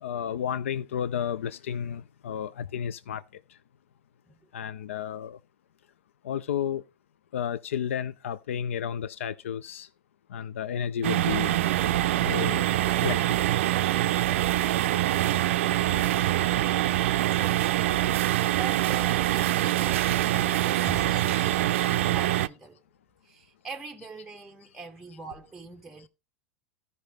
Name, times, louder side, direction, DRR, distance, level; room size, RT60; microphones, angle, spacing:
voice 1, 0.0-3.2 4.5-5.4 6.2-6.8 7.3-9.9 10.3-11.5 12.2-12.6 13.0-13.2 21.4-21.6, left 9 dB, 90° left, 0.4 m, -32 dB
sound 1, 11.0-22.5, right 14 dB, 80° right, 0.4 m, -24 dB
voice 2, 17.3-17.6 18.5-22.8 23.2-26.1, right 4 dB, 5° right, 0.7 m, -42 dB
14.0 x 5.3 x 3.4 m
hypercardioid pair, 115°, 7 cm